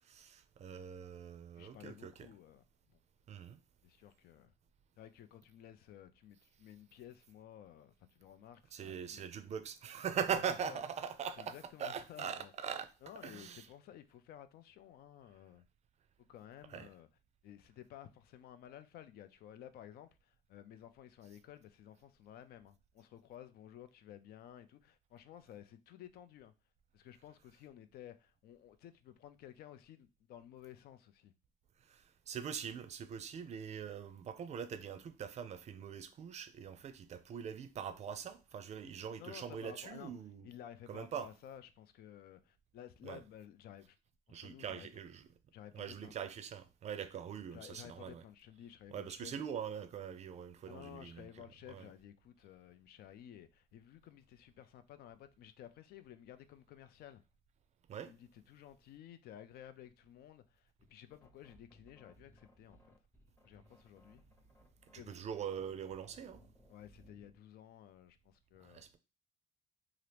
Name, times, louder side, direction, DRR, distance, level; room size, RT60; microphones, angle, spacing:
voice 1, 0.0-2.3 3.3-3.6 8.7-12.9 13.2-13.7 16.7-16.9 31.8-40.5 40.9-41.3 43.0-43.2 44.3-45.2 45.7-48.2 48.9-51.3 51.7-51.9 57.9-58.1 64.9-66.4 68.6-69.0, right 8 dB, 40° right, 0.4 m, -42 dB
voice 2, 1.6-3.0 3.8-4.5 5.0-9.3 10.3-10.8 11.4-12.5 13.0-15.6 16.3-17.1 17.4-26.5 26.9-31.3 38.8-40.1 40.4-44.0 44.3-44.9 45.5-46.1 47.5-49.5 50.7-57.2 58.1-62.8 63.4-64.2 64.9-65.2 66.7-68.8, left 10 dB, 65° left, 0.4 m, -54 dB
sound 1, 60.8-67.4, equal, 15° left, 0.7 m, -64 dB
2.8 x 2.5 x 3.3 m
cardioid pair, 110°, 17 cm